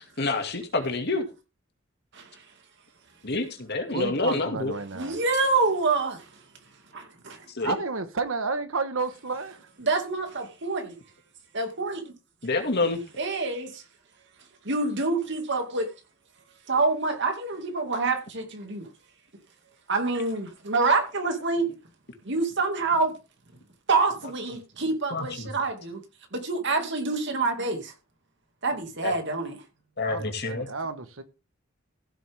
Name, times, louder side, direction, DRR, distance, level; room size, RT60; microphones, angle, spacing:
voice 1, 0.2-1.3 3.2-4.7 7.5-7.8 12.4-13.0 25.1-25.5 29.0-29.1 30.0-30.7, left 3 dB, 55° left, 2.3 m, -27 dB
voice 2, 3.9-5.2 7.6-9.7 30.0-31.2, right 3 dB, 85° right, 1.4 m, -31 dB
voice 3, 4.9-6.2 6.9-7.4 9.8-10.9 11.5-12.1 13.2-13.8 14.6-15.9 16.7-18.9 19.9-21.7 22.2-23.1 23.9-26.0 26.3-27.9 28.6-29.6, right 3 dB, 60° right, 2.4 m, -26 dB
15.5 x 7.5 x 3.6 m
head